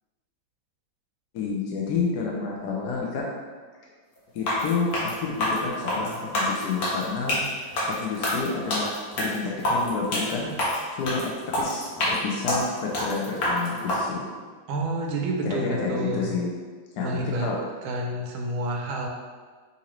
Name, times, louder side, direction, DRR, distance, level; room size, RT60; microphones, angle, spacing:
voice 1, 1.3-3.3 4.3-10.6 10.9-14.3 15.4-16.5 17.0-17.6, left 4 dB, 70° left, -2 dB, 1.0 m, -30 dB
sound 1, 4.4-14.0, left 1 dB, 55° left, 1.3 m, -27 dB
voice 2, 14.7-16.4 17.0-17.5 17.8-19.1, right 2 dB, 80° right, 1 dB, 1.4 m, -29 dB
5.6 x 2.6 x 3.0 m, 1.5 s
omnidirectional pair, 2.2 m